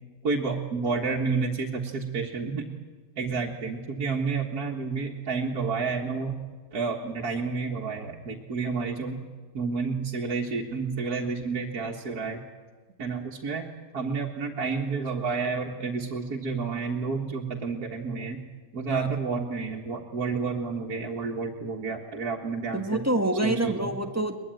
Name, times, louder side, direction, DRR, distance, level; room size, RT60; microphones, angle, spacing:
voice 1, 0.2-2.7 3.2-6.3 6.7-9.2 9.5-12.4 13.0-13.6 13.9-18.4 18.7-23.0 23.4-23.9, right 4 dB, 85° right, -2 dB, 2.2 m, -30 dB
voice 2, 22.7-24.4, right 1 dB, 10° right, 5 dB, 1.7 m, -26 dB
22.0 x 21.0 x 9.2 m, 1.5 s
omnidirectional pair, 1.6 m